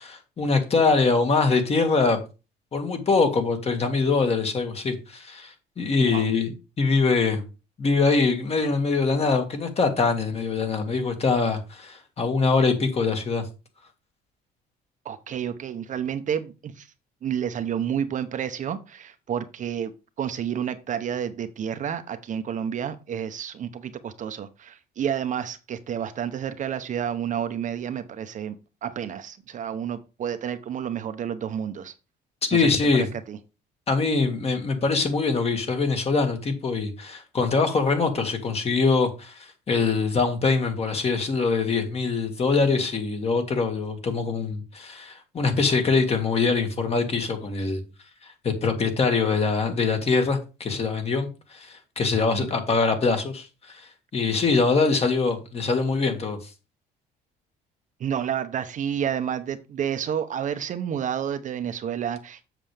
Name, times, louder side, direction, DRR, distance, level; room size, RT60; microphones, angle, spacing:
voice 1, 0.0-2.2 2.7-7.4 7.8-13.4 32.5-33.1 33.9-47.8 48.2-56.4, left 4 dB, 35° left, 2.0 m, -23 dB
voice 2, 15.0-16.9 17.2-19.9 20.2-31.9 32.5-32.7 33.3-33.4 52.3-52.5 58.0-62.4, right 8 dB, 50° right, 0.8 m, -30 dB
7.5 x 6.7 x 3.4 m
cardioid pair, 110°, 17 cm